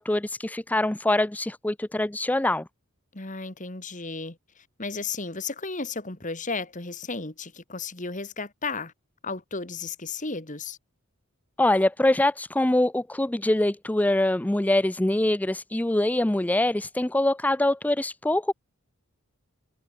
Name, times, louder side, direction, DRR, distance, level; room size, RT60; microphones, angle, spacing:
voice 1, 0.0-2.6 11.6-18.5, left 1 dB, 5° left, 0.4 m, -24 dB
voice 2, 3.1-8.9 9.2-10.8, left 4 dB, 35° left, 2.2 m, -34 dB
head